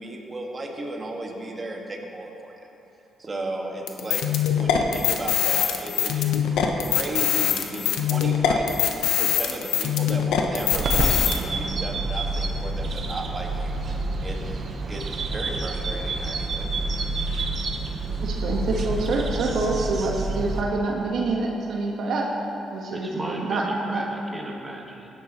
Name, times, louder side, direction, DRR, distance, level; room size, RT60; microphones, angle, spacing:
voice 1, 0.0-2.6 3.2-13.8 14.2-14.6 14.9-16.7 17.1-17.2, right 2 dB, 30° right, 0 dB, 1.7 m, -35 dB
sound 1, 3.9-11.4, left 9 dB, 85° left, 0.9 m, -23 dB
sound 2, 10.7-20.6, right 2 dB, 50° right, 1.0 m, -28 dB
voice 2, 18.2-22.3 22.7-24.0, right 3 dB, 70° right, -1 dB, 1.4 m, -26 dB
voice 3, 22.9-25.1, right 1 dB, 15° right, -1 dB, 1.6 m, -35 dB
16.5 x 10.0 x 3.1 m, 2.9 s
cardioid pair, 85°, 0 cm